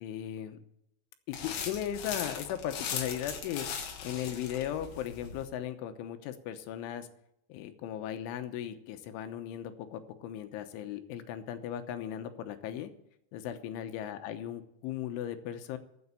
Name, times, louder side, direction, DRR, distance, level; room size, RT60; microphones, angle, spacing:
voice 1, 0.0-0.6 1.3-3.7 4.0-7.1 7.5-12.9 13.3-15.8, left 10 dB, 90° left, 8 dB, 3.5 m, -37 dB
sound 1, 1.3-5.4, left 7 dB, 60° left, 2.8 m, -39 dB
14.0 x 7.9 x 8.5 m, 0.76 s
omnidirectional pair, 5.5 m